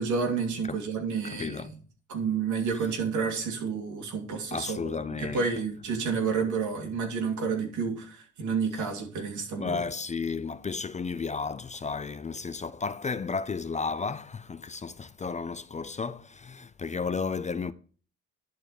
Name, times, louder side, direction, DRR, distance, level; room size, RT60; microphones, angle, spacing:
voice 1, 0.0-1.7 2.1-9.8, right 5 dB, 75° right, 2.7 m, -30 dB
voice 2, 1.2-1.7 4.5-5.5 9.6-17.7, left 5 dB, 25° left, 0.4 m, -33 dB
11.0 x 4.6 x 4.8 m
cardioid pair, 90°, 30 cm